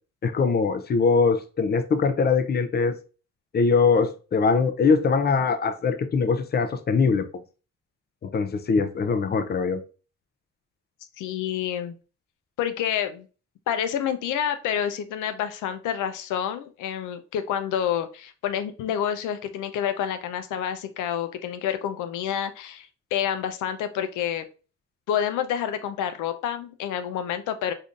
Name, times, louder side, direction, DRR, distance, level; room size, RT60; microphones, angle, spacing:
voice 1, 0.2-3.0 3.5-7.3 8.2-9.8, left 5 dB, 35° left, 9 dB, 0.5 m, -22 dB
voice 2, 11.2-12.0 12.6-13.3 13.7-24.4 25.1-27.7, left 9 dB, 85° left, 10 dB, 0.5 m, -28 dB
3.6 x 2.7 x 2.4 m, 0.35 s
cardioid pair, 90°, 30 cm